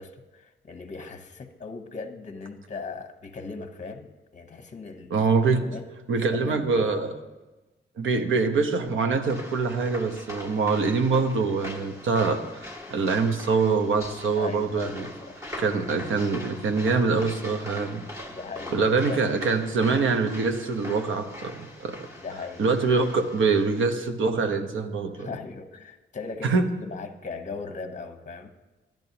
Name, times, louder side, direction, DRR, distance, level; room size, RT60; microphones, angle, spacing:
voice 1, 0.0-5.3 5.7-5.8 6.3-6.9 14.4-15.4 18.3-18.8 19.1-19.2 22.2-22.7 25.2-28.5, left 4 dB, 40° left, 8 dB, 0.8 m, -38 dB
voice 2, 5.1-5.6 6.1-7.1 8.0-15.1 15.6-18.0 18.7-22.1 22.6-25.3 26.4-26.7, right 4 dB, 90° right, 6 dB, 0.9 m, -24 dB
sound 1, 9.2-23.8, left 1 dB, 15° right, 1.2 m, -42 dB
14.0 x 10.5 x 2.9 m, 1.1 s
wide cardioid pair, 105°, 20 cm